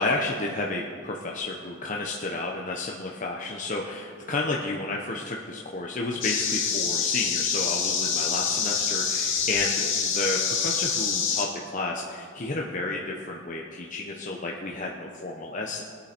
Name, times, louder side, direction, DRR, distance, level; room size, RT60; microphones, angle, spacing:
voice 1, 0.0-15.8, left 2 dB, 40° left, -1 dB, 0.8 m, -31 dB
sound 1, 6.2-11.4, left 6 dB, 85° left, 2.2 m, -26 dB
21.5 x 8.5 x 4.4 m, 2.3 s
head